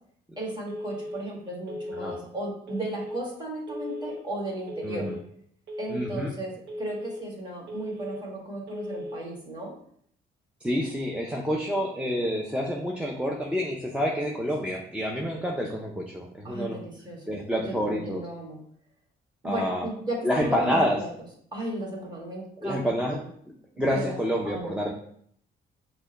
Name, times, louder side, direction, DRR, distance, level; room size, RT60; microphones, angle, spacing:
voice 1, 0.4-5.1 5.8-9.7 16.4-17.4 17.7-18.6 19.4-21.1 21.5-23.3 23.9-24.2 24.4-24.9, right 1 dB, 20° right, -3 dB, 1.8 m, -35 dB
Telephone, 0.7-1.2 1.7-2.2 2.7-3.2 3.7-4.2 4.7-5.2 5.7-6.2 6.7-7.2 7.7-8.2 8.7-9.2, left 1 dB, 65° right, 0.9 m, -36 dB
voice 2, 4.8-5.1 5.9-6.3 10.6-16.8 17.3-18.2 19.4-19.9 20.2-21.0 22.6-23.2 23.8-24.9, equal, 5° right, -2 dB, 0.6 m, -28 dB
6.1 x 2.2 x 3.9 m, 0.66 s
cardioid pair, 90°, 20 cm